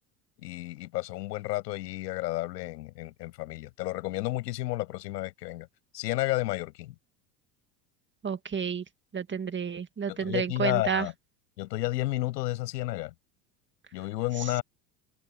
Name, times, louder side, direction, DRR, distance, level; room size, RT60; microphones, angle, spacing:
voice 1, 0.4-5.7 5.9-6.9 10.1-11.1 11.6-13.1 13.9-14.6, left 18 dB, 80° left, 7.0 m, -31 dB
voice 2, 8.2-8.8 9.1-11.1, right 6 dB, 25° right, 2.0 m, -30 dB
open air
hypercardioid pair, 85°, 49 cm